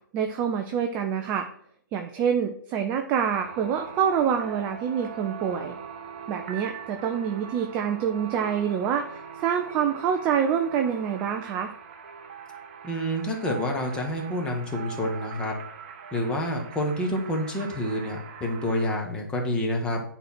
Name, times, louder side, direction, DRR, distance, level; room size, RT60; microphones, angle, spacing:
voice 1, 0.1-1.5 1.9-5.7 6.3-9.1 9.4-11.7, right 8 dB, 15° right, 5 dB, 0.4 m, -26 dB
sound 1, 3.3-19.0, right 7 dB, 30° right, 0.9 m, -41 dB
voice 2, 12.8-15.5 16.1-20.0, left 1 dB, 10° left, 1 dB, 1.4 m, -28 dB
10.0 x 4.5 x 5.8 m, 0.65 s
figure-of-eight pair, 135°, 11 cm